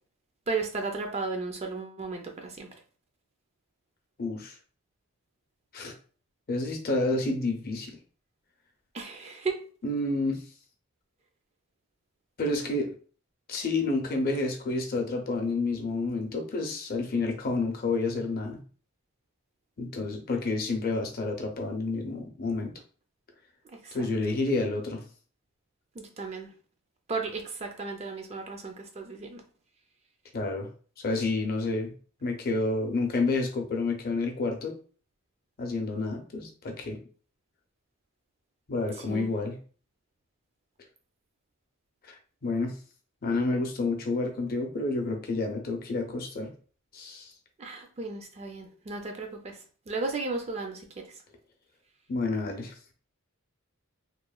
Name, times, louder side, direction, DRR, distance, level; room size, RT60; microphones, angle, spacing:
voice 1, 0.5-2.7 8.9-9.6 23.7-24.1 26.0-26.5 27.1-29.4 39.1-39.3 47.6-49.6 49.9-50.8, right 3 dB, 30° right, 0.4 m, -34 dB
voice 2, 4.2-4.5 5.7-5.9 6.5-8.0 9.8-10.4 12.4-12.9 13.5-18.6 19.8-22.7 23.9-25.0 30.3-30.7 31.0-31.9 32.2-34.7 35.6-37.0 38.7-39.6 42.1-42.2 42.4-42.8 43.2-46.5 46.9-47.3 52.1-52.9, left 3 dB, 45° left, 0.5 m, -29 dB
2.9 x 2.1 x 2.3 m
head